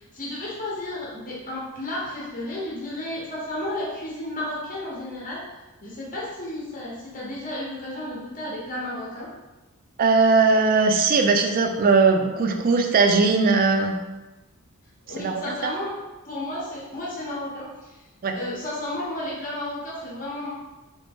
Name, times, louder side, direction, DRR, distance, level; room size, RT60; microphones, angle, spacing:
voice 1, 0.0-5.4 5.8-9.3 15.0-15.9 16.2-18.0 18.3-20.5, left 1 dB, 40° left, -6 dB, 0.9 m, -32 dB
voice 2, 10.0-14.0 15.2-15.7 18.2-18.4, right 4 dB, 40° right, 4 dB, 0.4 m, -19 dB
3.3 x 2.7 x 3.5 m, 1.1 s
head